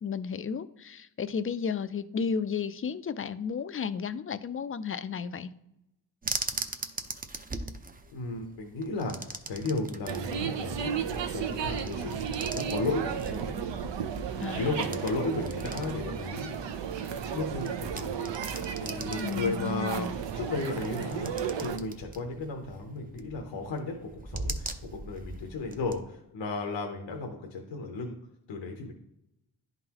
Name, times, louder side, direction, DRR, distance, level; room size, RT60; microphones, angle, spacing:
voice 1, 0.0-5.5 14.4-14.7 19.2-20.2, left 6 dB, 30° left, 14 dB, 0.4 m, -33 dB
sound 1, 6.2-26.0, right 2 dB, 20° right, 0.5 m, -41 dB
voice 2, 8.1-11.0 11.3-13.6 14.3-16.5 17.3-21.3 21.6-28.1 28.5-28.9, left 3 dB, 85° left, 2 dB, 0.9 m, -34 dB
sound 2, 10.1-21.8, right 7 dB, 75° right, 0.6 m, -34 dB
10.5 x 3.9 x 2.9 m, 0.85 s
cardioid pair, 65°, 44 cm